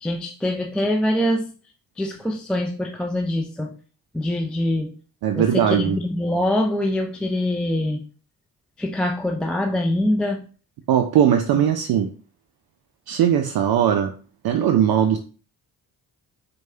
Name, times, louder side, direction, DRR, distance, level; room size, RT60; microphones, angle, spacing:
voice 1, 0.0-1.5 2.0-3.7 4.1-4.9 5.3-8.0 8.8-10.4, left 1 dB, ahead, 1 dB, 0.4 m, -24 dB
voice 2, 5.2-6.0 10.9-12.1 13.1-14.1 14.4-15.2, right 9 dB, 50° right, 6 dB, 0.5 m, -19 dB
4.5 x 2.3 x 2.7 m, 0.38 s
hypercardioid pair, 45°, 48 cm